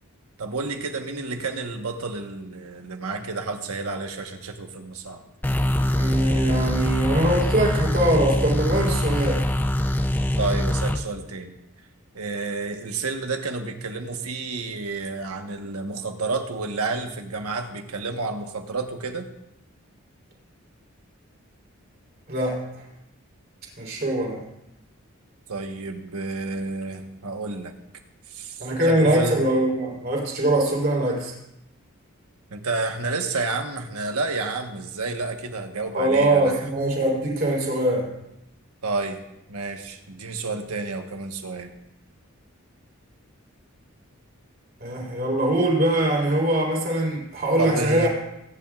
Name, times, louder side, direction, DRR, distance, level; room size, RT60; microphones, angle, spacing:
voice 1, 0.4-5.2 10.4-11.6 12.1-19.3 25.5-27.7 28.3-29.4 32.5-36.6 38.8-39.2 39.5-41.7 47.6-48.1, right 3 dB, 90° right, 5 dB, 1.3 m, -30 dB
sound 1, 5.4-11.0, left 1 dB, 10° left, 0.4 m, -23 dB
voice 2, 6.0-9.4 22.3-22.8 23.8-24.4 28.6-31.3 35.9-38.1 44.8-48.1, right 1 dB, 45° right, -2 dB, 4.0 m, -22 dB
22.0 x 10.5 x 2.4 m, 0.85 s
head